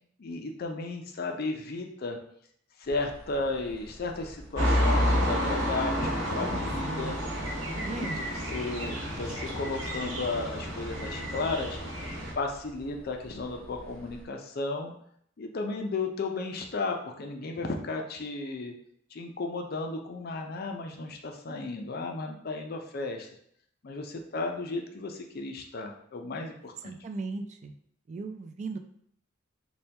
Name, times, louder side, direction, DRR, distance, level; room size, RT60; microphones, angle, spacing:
voice 1, 0.2-2.2 2.8-7.2 7.7-11.8 12.4-14.9 15.4-18.7 19.1-23.3 23.8-26.9, left 3 dB, 50° left, 3 dB, 0.5 m, -34 dB
sound 1, 2.8-14.3, equal, 5° left, 0.8 m, -50 dB
sound 2, 4.5-12.3, equal, 80° right, 0.9 m, -30 dB
voice 2, 6.5-7.1 7.7-8.2 26.8-27.7 28.1-28.8, right 3 dB, 35° right, 7 dB, 0.3 m, -37 dB
4.3 x 2.2 x 3.3 m, 0.67 s
head